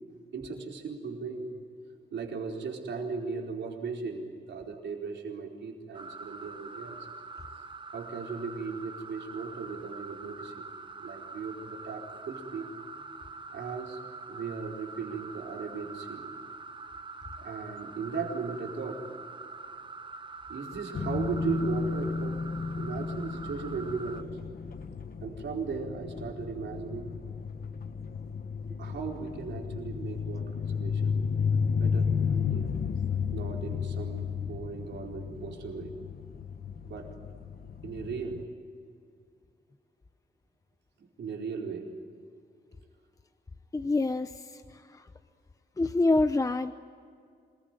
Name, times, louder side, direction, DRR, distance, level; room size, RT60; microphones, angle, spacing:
voice 1, 0.3-1.5 2.1-7.1 7.9-10.7 11.0-12.7 13.5-14.0 14.3-16.3 17.4-19.1 20.5-22.4 22.8-24.4 25.2-27.2 28.7-31.2 31.8-32.7 33.3-36.0 36.8-37.1 37.8-38.5 41.0-41.9, right 5 dB, 85° right, 0 dB, 4.5 m, -37 dB
sound 1, 5.9-24.2, right 3 dB, 25° right, 0.9 m, -44 dB
sound 2, 20.9-38.4, left 6 dB, 55° left, 1.3 m, -33 dB
voice 2, 43.7-45.1 45.8-46.7, left 2 dB, 20° left, 9 dB, 0.7 m, -27 dB
27.0 x 21.0 x 9.2 m, 2.3 s
wide cardioid pair, 160°, 18 cm